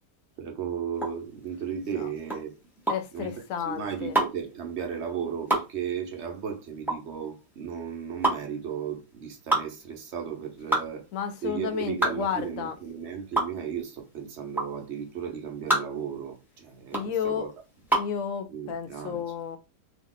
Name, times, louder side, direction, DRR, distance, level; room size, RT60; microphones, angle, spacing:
voice 1, 0.4-2.5 3.1-3.3 3.6-11.0 11.4-17.5 18.5-19.2, right 7 dB, 55° right, 1.0 m, -35 dB
sound 1, 0.9-18.2, right 2 dB, ahead, 0.6 m, -29 dB
voice 2, 2.9-4.2 11.1-12.8 16.9-17.5 17.9-19.6, left 8 dB, 70° left, 0.9 m, -32 dB
2.9 x 2.4 x 3.7 m
omnidirectional pair, 1.6 m